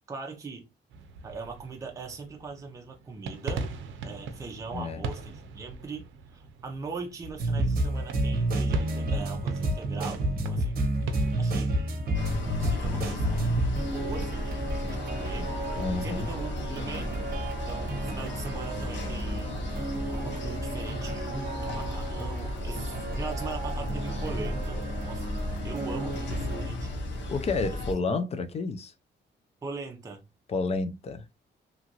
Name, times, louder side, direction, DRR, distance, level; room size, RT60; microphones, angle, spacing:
voice 1, 0.1-0.7 1.2-3.7 4.0-10.8 11.4-12.0 12.6-15.5 16.0-24.8 25.1-25.3 25.6-27.2 29.6-30.2, right 4 dB, 15° right, 0.5 m, -40 dB
sound 1, 0.9-14.2, right 4 dB, 85° right, 0.5 m, -41 dB
voice 2, 4.7-5.0 15.8-16.3 27.3-28.9 30.5-31.2, left 3 dB, 35° left, 0.4 m, -30 dB
sound 2, 7.4-26.7, right 1 dB, 50° right, 0.8 m, -32 dB
sound 3, 12.1-27.9, left 1 dB, 70° left, 0.7 m, -34 dB
2.9 x 2.4 x 2.8 m
cardioid pair, 150°, 19 cm